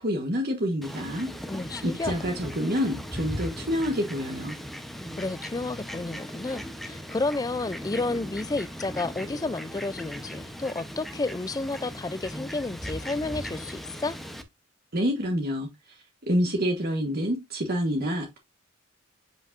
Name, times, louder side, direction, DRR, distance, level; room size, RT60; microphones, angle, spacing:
voice 1, 0.0-1.3 1.8-4.6 14.9-18.4, equal, 45° right, 1.2 m, -28 dB
Fowl, 0.8-14.4, equal, ahead, 0.8 m, -38 dB
voice 2, 1.5-2.1 5.2-14.2, left 3 dB, 15° left, 0.3 m, -31 dB
7.9 x 5.2 x 2.5 m
head